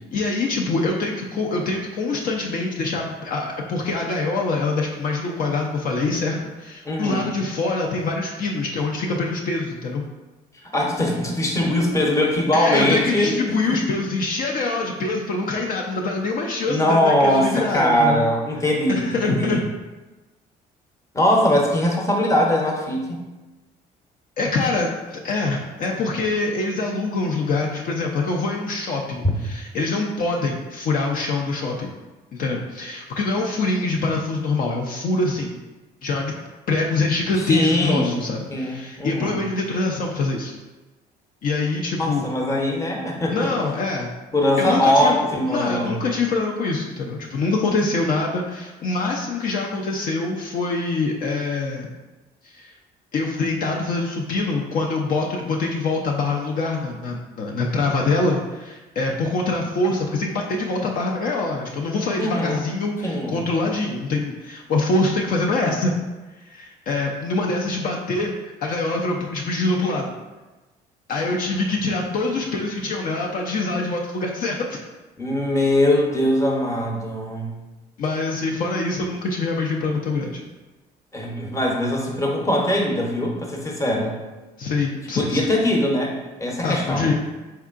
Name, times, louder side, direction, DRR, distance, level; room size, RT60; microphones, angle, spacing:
voice 1, 0.1-10.0 12.5-18.2 18.9-19.7 24.4-31.9 32.3-35.6 36.0-36.3 36.7-40.5 41.4-42.3 43.3-44.1 44.6-45.2 45.5-51.9 52.5-52.7 53.1-65.9 66.5-70.1 71.1-74.8 78.0-80.4 84.6-85.4 86.6-87.1, left 3 dB, 55° left, 0 dB, 0.5 m, -24 dB
voice 2, 6.8-7.3 10.7-13.4 13.6-13.8 16.7-19.6 21.1-23.2 37.5-38.2 38.5-39.3 42.0-43.5 44.3-46.0 62.2-62.6 63.0-63.4 75.2-77.5 81.1-84.2 85.1-86.1 86.4-87.1, left 1 dB, 20° left, 0 dB, 0.8 m, -21 dB
4.5 x 3.5 x 2.4 m, 1.2 s
cardioid pair, 110°, 17 cm